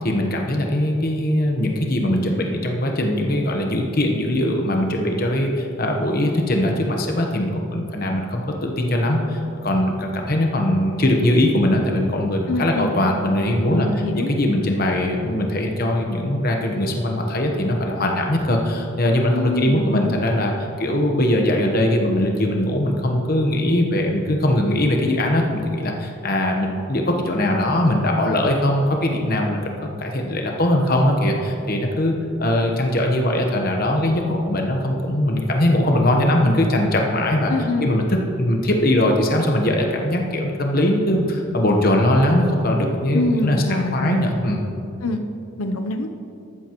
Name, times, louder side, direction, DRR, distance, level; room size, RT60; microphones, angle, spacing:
voice 1, 0.0-13.9 14.2-37.5 37.8-44.6, left 1 dB, 45° left, 1 dB, 1.1 m, -21 dB
voice 2, 12.5-12.9 13.7-14.3 19.3-20.2 37.5-37.9 43.1-44.2 45.0-45.2 45.6-46.1, left 2 dB, 90° left, 6 dB, 0.7 m, -24 dB
14.0 x 12.5 x 3.0 m, 2.6 s
head